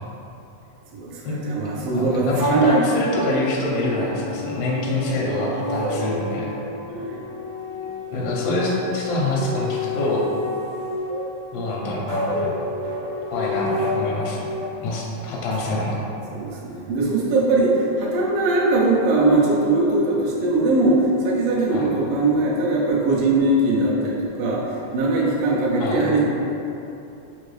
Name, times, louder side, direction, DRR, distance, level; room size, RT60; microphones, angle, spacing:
voice 1, 0.9-3.0 6.9-7.2 14.3-14.4 16.3-26.2, right 2 dB, 90° right, -4 dB, 1.3 m, -21 dB
voice 2, 1.9-6.5 8.1-10.2 11.5-12.5 13.3-14.5 14.8-16.0 21.7-21.9 25.8-26.0, left 2 dB, 80° left, -4 dB, 1.4 m, -25 dB
sound 1, 2.3-14.7, left 2 dB, 70° right, 1.7 m, -29 dB
4.6 x 2.6 x 3.1 m, 2.9 s
omnidirectional pair, 3.4 m